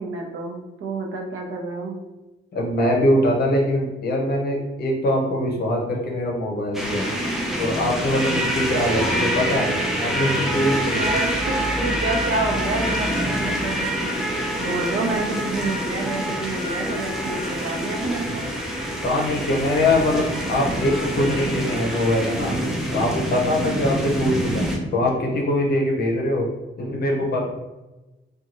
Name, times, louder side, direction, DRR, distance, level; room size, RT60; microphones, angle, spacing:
voice 1, 0.0-2.0 10.9-14.2 14.6-18.5, right 2 dB, 85° right, 1 dB, 0.6 m, -29 dB
voice 2, 2.5-7.1 7.6-11.1 19.0-22.6 22.9-26.5 26.8-27.4, left 1 dB, 50° left, -1 dB, 0.7 m, -23 dB
sound 1, 6.7-24.8, equal, ahead, 0.3 m, -26 dB
2.6 x 2.2 x 2.9 m, 1.1 s
wide cardioid pair, 175°, 21 cm